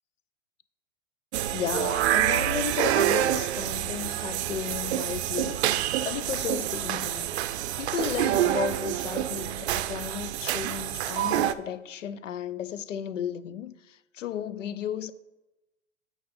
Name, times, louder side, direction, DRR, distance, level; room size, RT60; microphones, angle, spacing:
sound 1, 1.3-11.5, right 12 dB, 60° right, 0.5 m, -27 dB
voice 1, 1.5-5.6 6.0-7.4 7.8-15.1, left 9 dB, 85° left, 0.5 m, -34 dB
8.5 x 4.7 x 4.1 m
hypercardioid pair, 105°, 37 cm